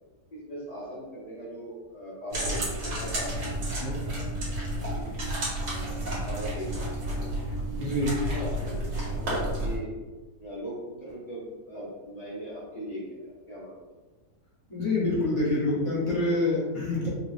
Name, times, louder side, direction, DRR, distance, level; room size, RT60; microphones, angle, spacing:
voice 1, 0.5-4.3 4.8-5.1 5.7-6.0 6.2-7.1 8.2-9.9 10.4-13.8, right 1 dB, 45° left, -8 dB, 0.5 m, -39 dB
sound 1, 2.3-9.8, right 1 dB, 65° right, 2.0 m, -31 dB
voice 2, 7.8-8.2 14.7-17.1, left 2 dB, 20° left, -7 dB, 0.9 m, -26 dB
4.6 x 2.3 x 3.3 m, 1.3 s
omnidirectional pair, 2.0 m